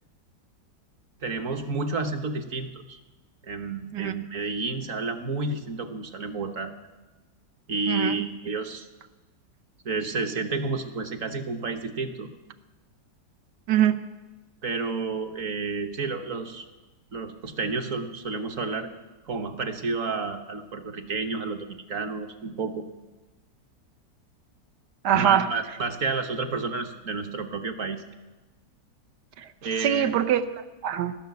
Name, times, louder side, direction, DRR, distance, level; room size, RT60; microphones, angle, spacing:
voice 1, 1.2-3.0 3.4-6.7 7.7-8.9 9.8-12.3 14.6-16.6 17.1-18.9 19.3-22.8 25.1-28.0 29.6-30.1, right 3 dB, 50° right, 6 dB, 1.5 m, -30 dB
voice 2, 25.0-25.5 29.4-29.5 29.8-31.1, right 10 dB, 75° right, 9 dB, 1.4 m, -23 dB
17.5 x 6.8 x 9.4 m, 1.1 s
omnidirectional pair, 1.8 m